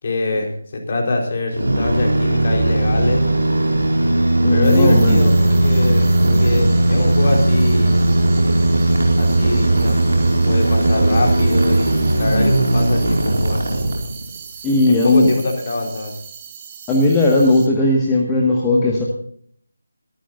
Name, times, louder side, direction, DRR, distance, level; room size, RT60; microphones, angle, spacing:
voice 1, 0.0-3.3 4.5-8.0 9.2-13.8 14.9-16.2, left 2 dB, 35° left, 1 dB, 4.4 m, -23 dB
sound 1, 1.5-14.4, right 2 dB, 60° right, 5.5 m, -17 dB
voice 2, 4.4-5.2 14.6-15.3 16.9-19.0, left 2 dB, 10° left, -2 dB, 1.8 m, -16 dB
sound 2, 4.6-17.7, right 7 dB, 20° right, 1.8 m, -39 dB
23.5 x 14.0 x 2.6 m, 0.62 s
figure-of-eight pair, 155°, 0 cm